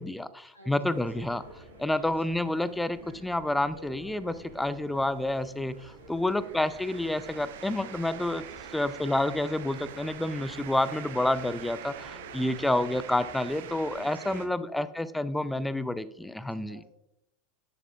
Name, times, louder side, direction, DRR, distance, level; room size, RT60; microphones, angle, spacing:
voice 1, 0.0-1.4 1.8-8.4 8.7-16.8, left 1 dB, 5° left, 16 dB, 0.4 m, -29 dB
voice 2, 0.5-1.3 2.0-2.1 6.1-6.7 14.0-14.7 16.7-16.8, left 1 dB, 90° left, -2 dB, 1.8 m, -50 dB
sound 1, 0.9-14.0, right 1 dB, 75° right, 1.7 m, -50 dB
sound 2, 4.4-14.5, right 10 dB, 60° right, 0.6 m, -45 dB
10.0 x 7.3 x 2.4 m, 0.82 s
figure-of-eight pair, 80°, 0 cm